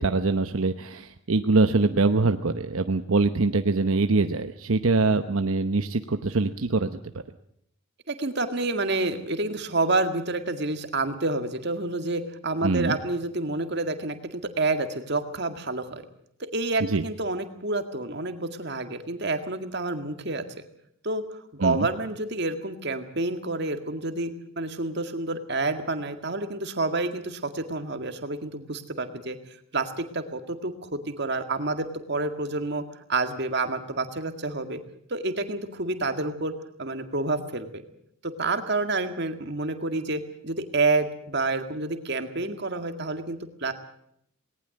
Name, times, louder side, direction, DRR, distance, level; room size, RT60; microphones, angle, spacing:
voice 1, 0.0-7.0 12.6-13.0 16.8-17.0 21.6-21.9, right 3 dB, 80° right, 8 dB, 0.9 m, -23 dB
voice 2, 8.1-16.0 16.4-20.4 21.0-21.2 21.5-29.4 29.7-32.8 33.1-34.8 35.1-36.5 36.8-37.8 38.2-43.7, right 2 dB, 50° right, 8 dB, 2.0 m, -28 dB
19.0 x 19.0 x 7.8 m, 0.71 s
head